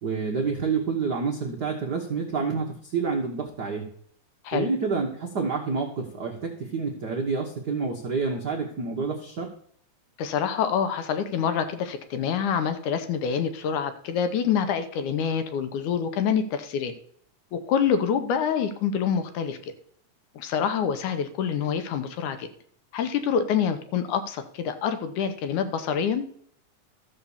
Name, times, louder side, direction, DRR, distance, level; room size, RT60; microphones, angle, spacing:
voice 1, 0.0-3.9 4.5-9.5, right 4 dB, 65° right, 1 dB, 1.0 m, -28 dB
voice 2, 10.2-16.9 17.5-19.6 20.4-22.5 22.9-26.3, left 7 dB, 75° left, 9 dB, 2.3 m, -26 dB
13.5 x 5.5 x 7.1 m, 0.63 s
omnidirectional pair, 3.6 m